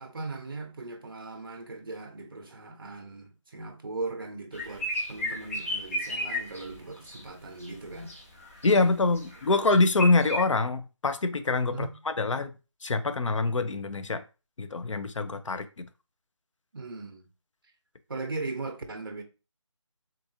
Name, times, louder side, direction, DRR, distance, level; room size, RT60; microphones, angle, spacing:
voice 1, 0.0-8.1 9.5-9.6 11.7-11.9 16.7-17.3 18.1-19.2, right 3 dB, 45° right, 0.7 m, -38 dB
sound 1, 4.5-7.2 7.6-8.8 9.1-10.4, left 1 dB, 30° left, 0.8 m, -34 dB
voice 2, 8.6-11.9 12.2-12.5 12.8-14.2 14.6-15.9, left 3 dB, 80° left, 0.6 m, -25 dB
3.8 x 2.6 x 2.7 m
figure-of-eight pair, 175°, 16 cm